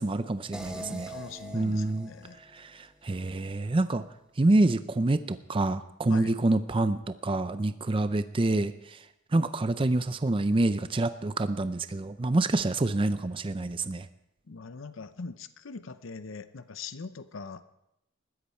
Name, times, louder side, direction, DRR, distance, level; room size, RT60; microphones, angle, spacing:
voice 1, 0.0-1.1 1.5-2.1 2.5-4.0 4.4-9.0 9.3-14.1, right 2 dB, 25° right, 11 dB, 0.5 m, -27 dB
sound 1, 0.5-3.6, right 1 dB, 5° right, 1.5 m, -44 dB
voice 2, 0.7-2.4 6.1-6.3 14.5-17.6, left 4 dB, 65° left, 12 dB, 0.7 m, -42 dB
20.0 x 14.0 x 4.4 m, 0.82 s
head